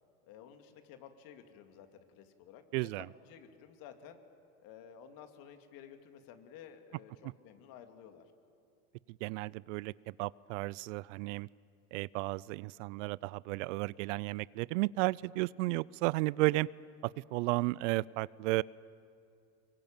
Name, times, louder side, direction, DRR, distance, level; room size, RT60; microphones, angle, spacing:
voice 1, 0.2-4.2 4.6-8.2 16.4-16.5, left 8 dB, 55° left, 6 dB, 2.7 m, -53 dB
voice 2, 2.7-3.1 9.2-9.9 10.2-11.5 11.9-16.7 17.0-18.6, right 22 dB, 60° right, 23 dB, 0.5 m, -33 dB
25.0 x 23.0 x 9.0 m, 2.5 s
hypercardioid pair, 90°, 42 cm